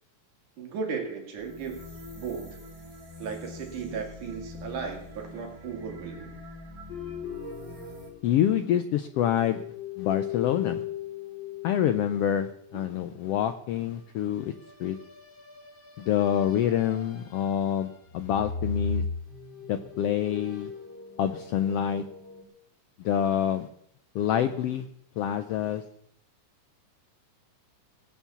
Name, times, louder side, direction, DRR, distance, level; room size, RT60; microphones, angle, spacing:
voice 1, 0.6-1.8 2.1-2.6 3.2-6.4 12.7-12.9, right 5 dB, 80° right, 2 dB, 3.8 m, -36 dB
sound 1, 1.4-8.1, left 1 dB, 15° right, 1.9 m, -44 dB
sound 2, 6.9-8.8 9.1-13.0 14.6-17.8 18.1-22.4, left 6 dB, 40° left, 2.8 m, -38 dB
voice 2, 8.2-9.6 10.0-10.8 11.6-14.5 14.8-15.0 16.0-19.0 19.7-20.7 21.2-22.0 23.0-23.7 24.1-24.9 25.2-25.8, left 10 dB, 85° left, 9 dB, 1.3 m, -26 dB
18.5 x 7.2 x 7.0 m, 0.71 s
omnidirectional pair, 3.5 m